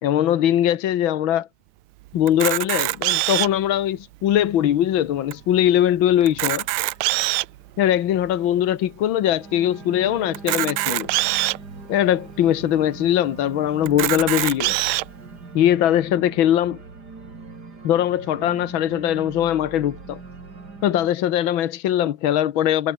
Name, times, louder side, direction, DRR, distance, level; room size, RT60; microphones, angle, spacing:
voice 1, 0.0-1.5 2.1-6.6 7.8-11.1 11.9-14.8 15.5-16.8 17.8-20.2 20.8-22.9, left 11 dB, 60° left, 1.3 m, -21 dB
Camera, 2.3-3.7 4.3-4.4 4.6-4.8 5.3-5.4 6.2-7.6 8.2-8.3 10.3-11.6 12.3-12.4 12.7-12.8 13.9-15.0, right 19 dB, 80° right, 1.8 m, -23 dB
Organ, 4.2-21.1, right 4 dB, 35° right, 3.9 m, -42 dB
omnidirectional pair, 3.4 m